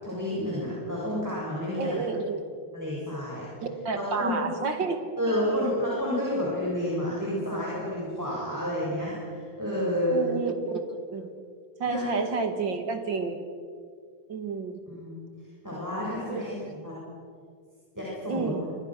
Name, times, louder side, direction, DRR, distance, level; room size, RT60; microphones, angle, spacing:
voice 1, 0.0-2.0 2.7-3.4 4.0-4.5 5.2-10.2 11.8-12.0 14.9-15.2 15.6-16.9 17.9-18.5, left 1 dB, 10° right, -7 dB, 8.0 m, -30 dB
voice 2, 1.7-2.5 3.6-5.1 5.5-5.7 10.1-11.3 11.8-13.4 14.3-14.8 16.3-16.5 18.3-18.6, right 4 dB, 60° right, 7 dB, 2.7 m, -30 dB
28.0 x 25.0 x 6.7 m, 2.1 s
omnidirectional pair, 2.4 m